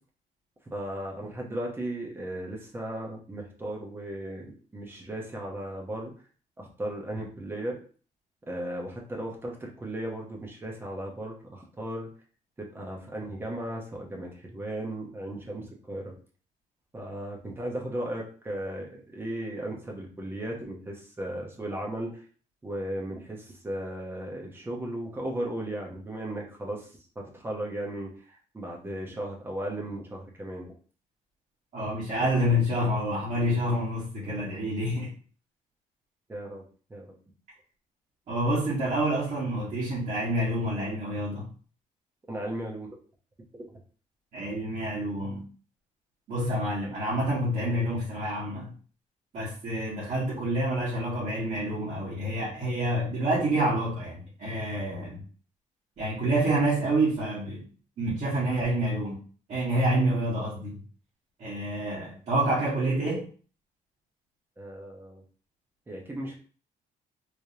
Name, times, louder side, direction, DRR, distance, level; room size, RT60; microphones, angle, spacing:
voice 1, 0.7-6.1 6.6-7.8 8.5-12.1 12.6-16.1 16.9-22.2 22.6-30.7 36.3-36.6 36.9-37.1 42.3-43.0 64.6-65.2 65.9-66.4, right 1 dB, 15° right, -1 dB, 0.9 m, -36 dB
voice 2, 31.7-35.1 38.3-41.5 44.3-45.4 46.3-48.7 49.3-55.2 56.0-57.7 58.0-59.2 59.5-60.8 61.4-63.2, right 1 dB, 50° right, -9 dB, 1.6 m, -28 dB
3.3 x 3.2 x 2.8 m, 0.41 s
cardioid pair, 150°, 14 cm